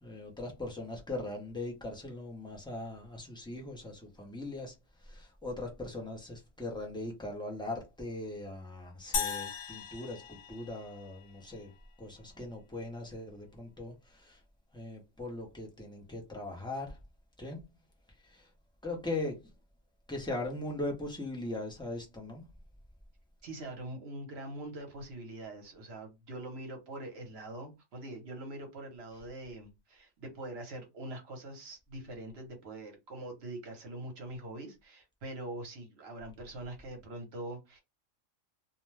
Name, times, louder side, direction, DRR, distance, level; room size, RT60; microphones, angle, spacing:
voice 1, 0.0-11.7 12.0-14.4 14.7-17.0 17.4-17.6 18.2-18.5 18.8-19.5 20.1-22.5, left 2 dB, 5° left, 0.5 m, -40 dB
sound 1, 9.1-11.6, left 7 dB, 85° left, 1.1 m, -37 dB
voice 2, 23.4-37.8, right 1 dB, 55° right, 1.1 m, -43 dB
2.6 x 2.2 x 3.2 m
omnidirectional pair, 1.3 m